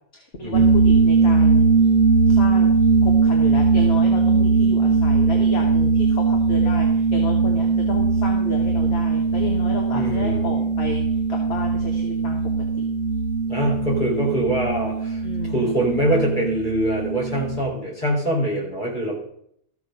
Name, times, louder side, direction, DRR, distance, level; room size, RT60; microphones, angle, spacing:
voice 1, 0.1-1.7 2.3-2.8 3.0-11.0 11.3-12.9 15.2-15.7, left 2 dB, 65° left, 1 dB, 1.7 m, -32 dB
sound 1, 0.5-17.6, right 4 dB, 75° right, 1.0 m, -19 dB
voice 2, 9.9-10.6 13.5-15.2 15.5-19.2, right 1 dB, 45° left, -3 dB, 4.0 m, -24 dB
14.0 x 6.8 x 5.2 m, 0.70 s
omnidirectional pair, 1.2 m